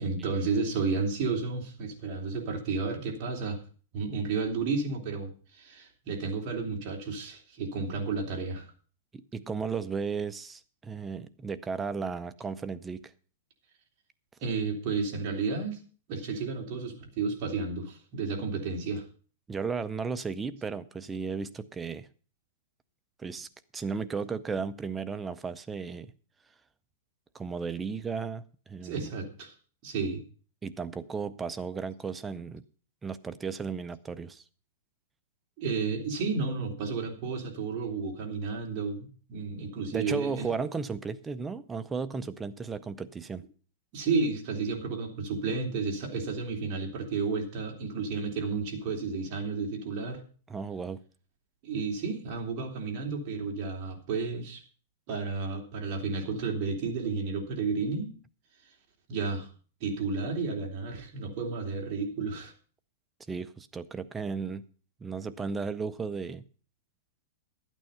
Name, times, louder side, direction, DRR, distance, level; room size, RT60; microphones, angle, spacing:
voice 1, 0.0-3.6 3.9-8.7 14.4-15.8 16.1-19.1 28.8-29.5 29.8-30.2 35.6-40.5 43.9-50.2 51.6-54.6 55.1-58.1 59.1-59.5 59.8-62.5, right 4 dB, 40° right, 3.2 m, -32 dB
voice 2, 9.1-13.1 19.5-22.1 23.2-23.5 23.7-26.1 27.3-29.1 30.6-32.6 33.0-34.4 39.9-43.4 50.5-51.0 63.3-64.6 65.0-66.4, right 5 dB, 10° right, 0.5 m, -35 dB
12.0 x 9.1 x 5.6 m
supercardioid pair, 160°, 0 cm